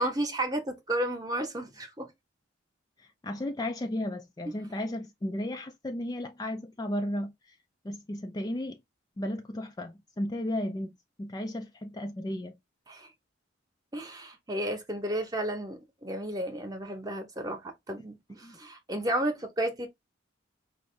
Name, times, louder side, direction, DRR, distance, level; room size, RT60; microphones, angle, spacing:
voice 1, 0.0-2.1 12.9-13.1 13.9-19.9, right 1 dB, 20° right, 0.9 m, -32 dB
voice 2, 3.0-7.6 7.8-8.8 9.2-10.9 11.2-12.6 18.4-18.6, left 1 dB, 20° left, 0.4 m, -34 dB
4.7 x 2.6 x 3.2 m
head